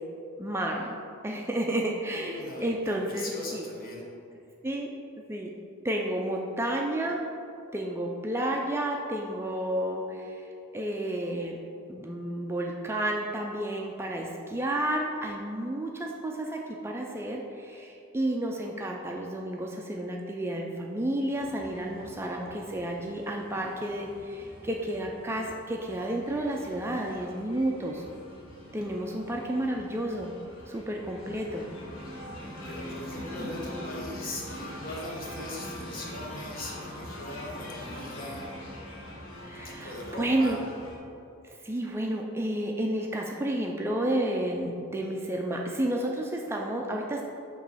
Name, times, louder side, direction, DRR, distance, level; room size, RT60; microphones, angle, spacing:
voice 1, 0.4-1.0 1.2-3.6 4.6-4.9 5.3-5.5 5.8-7.2 7.7-10.5 10.7-11.6 11.9-28.0 28.7-30.3 30.7-31.6 33.2-33.5 39.4-40.6 41.4-47.3, right 1 dB, 10° right, 0 dB, 0.4 m, -31 dB
voice 2, 2.1-4.0 32.6-38.4 39.5-40.6, left 1 dB, 45° left, -3 dB, 1.3 m, -40 dB
sound 1, 21.3-41.0, equal, 80° left, 1.4 m, -43 dB
7.5 x 3.1 x 5.5 m, 2.6 s
head